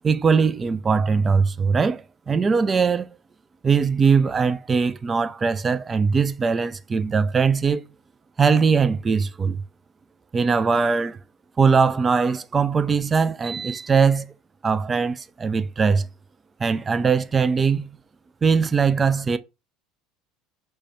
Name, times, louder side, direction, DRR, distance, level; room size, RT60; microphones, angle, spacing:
voice 1, 0.0-3.1 3.6-7.8 8.4-9.6 10.3-11.2 11.6-14.3 14.6-16.1 16.6-17.9 18.4-19.4, right 5 dB, 25° right, 0.3 m, -21 dB
4.5 x 2.2 x 3.0 m
figure-of-eight pair, 65°, 0 cm